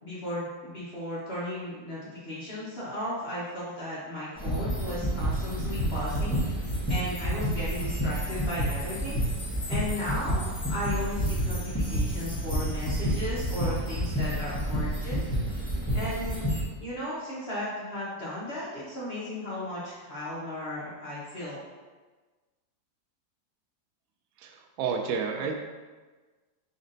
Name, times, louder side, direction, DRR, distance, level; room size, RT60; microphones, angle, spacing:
voice 1, 0.0-9.2 9.7-15.2 15.9-16.4 16.8-21.6, left 1 dB, 45° left, -8 dB, 0.9 m, -35 dB
sound 1, 4.4-16.6, equal, 10° left, 0.8 m, -29 dB
voice 2, 24.4-25.6, right 5 dB, 85° right, 3 dB, 0.7 m, -30 dB
4.3 x 4.1 x 2.6 m, 1.3 s
omnidirectional pair, 2.0 m